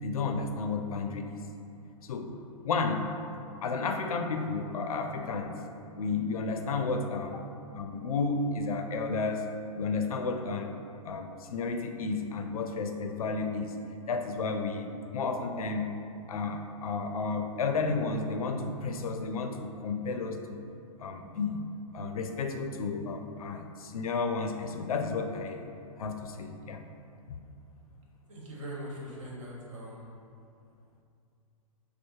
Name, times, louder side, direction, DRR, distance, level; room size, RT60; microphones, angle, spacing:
voice 1, 0.0-1.4 2.0-2.4 2.6-3.1 3.6-5.6 5.9-7.4 7.7-9.5 9.7-10.8 11.0-13.8 14.1-15.9 16.3-20.6 21.0-21.6 21.9-25.7 26.0-26.8 27.3-27.4, left 4 dB, 90° left, 6 dB, 0.4 m, -32 dB
voice 2, 28.3-30.1, equal, 60° right, -4 dB, 1.2 m, -41 dB
5.2 x 2.0 x 3.1 m, 2.6 s
hypercardioid pair, 130°, 18 cm